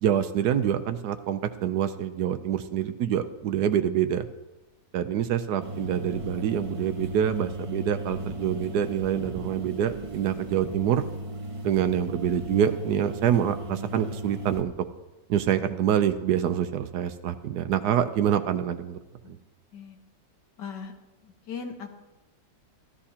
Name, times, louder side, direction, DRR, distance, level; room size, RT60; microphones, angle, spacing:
voice 1, 0.0-4.2 4.9-11.0 11.6-14.7 15.3-19.0 19.3-19.4, right 9 dB, 70° right, 10 dB, 1.1 m, -26 dB
sound 1, 5.6-14.6, right 1 dB, 30° right, 0.6 m, -36 dB
voice 2, 20.6-20.9 21.2-22.0, left 6 dB, 75° left, 4 dB, 1.8 m, -38 dB
15.0 x 12.5 x 2.8 m, 1.1 s
omnidirectional pair, 1.9 m